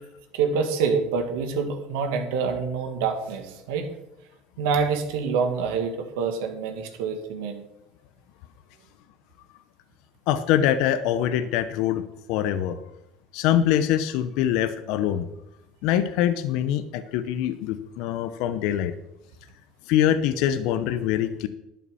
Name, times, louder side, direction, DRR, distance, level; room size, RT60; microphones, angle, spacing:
voice 1, 0.4-3.9 4.6-7.6, right 5 dB, 85° right, 5 dB, 1.9 m, -26 dB
voice 2, 10.3-12.0 12.3-12.8 13.3-15.3 15.8-18.9 19.9-21.5, left 10 dB, 70° left, 11 dB, 0.7 m, -24 dB
11.0 x 5.9 x 6.9 m, 0.88 s
supercardioid pair, 105°, 0 cm